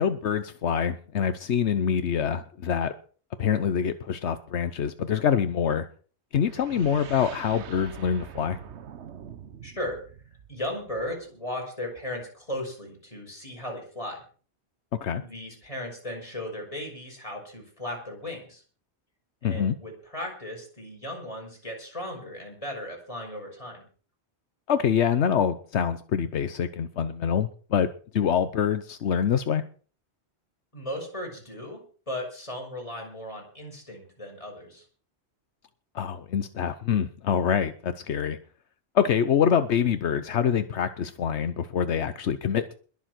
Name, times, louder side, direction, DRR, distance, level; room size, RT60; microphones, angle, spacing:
voice 1, 0.0-2.9 3.4-5.9 6.3-8.6 15.0-15.2 19.4-19.7 24.7-27.9 28.1-29.6 35.9-38.4 38.9-42.8, left 8 dB, 80° left, 11 dB, 1.1 m, -25 dB
sound 1, 6.4-11.3, right 8 dB, 80° right, 1.2 m, -44 dB
voice 2, 9.6-10.0 10.5-14.2 15.2-18.6 19.4-23.8 30.7-34.9, left 1 dB, 30° left, 0 dB, 5.9 m, -36 dB
21.5 x 7.4 x 6.0 m, 0.42 s
omnidirectional pair, 1.1 m